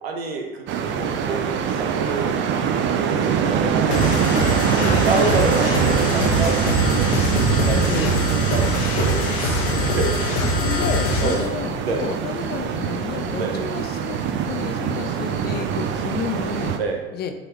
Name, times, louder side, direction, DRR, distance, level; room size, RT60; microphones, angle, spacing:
voice 1, 0.0-2.3 2.9-7.9 8.3-10.4 11.2-11.4 11.8-12.1 13.3-13.6 16.7-17.0, right 3 dB, 70° right, 3 dB, 1.1 m, -28 dB
sound 1, 0.7-16.8, right 7 dB, 35° right, 0.6 m, -23 dB
sound 2, 3.9-11.5, left 2 dB, 55° left, 1.2 m, -24 dB
voice 2, 7.8-8.3 10.5-16.7 17.1-17.3, left 7 dB, 30° left, 6 dB, 0.6 m, -31 dB
8.4 x 3.8 x 3.1 m, 1.2 s
figure-of-eight pair, 75°, 31 cm